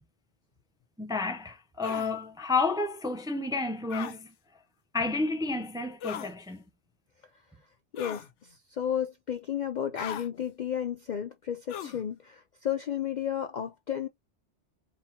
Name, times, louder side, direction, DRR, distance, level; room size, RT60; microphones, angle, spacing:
voice 1, 1.0-4.3 4.9-6.6, left 3 dB, 5° right, 0.4 m, -30 dB
sound 1, 1.8-2.1 3.9-4.2 6.0-6.3 8.0-8.3 9.9-10.3 11.7-12.0, left 9 dB, 90° left, 0.9 m, -38 dB
voice 2, 7.9-14.1, left 9 dB, 55° left, 0.5 m, -33 dB
4.0 x 2.9 x 4.1 m
omnidirectional pair, 1.2 m